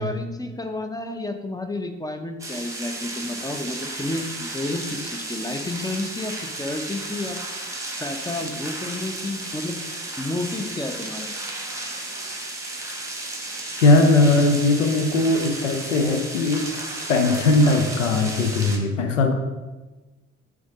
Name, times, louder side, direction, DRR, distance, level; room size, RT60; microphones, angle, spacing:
voice 1, 0.0-7.4 8.0-9.8 10.2-11.3, left 2 dB, 10° left, 6 dB, 0.7 m, -31 dB
sound 1, 2.4-18.8, right 2 dB, 10° right, 1.7 m, -33 dB
voice 2, 13.8-16.6 17.1-19.3, left 2 dB, 80° left, 6 dB, 0.6 m, -19 dB
6.2 x 3.6 x 5.0 m, 1.2 s
figure-of-eight pair, 45°, 37 cm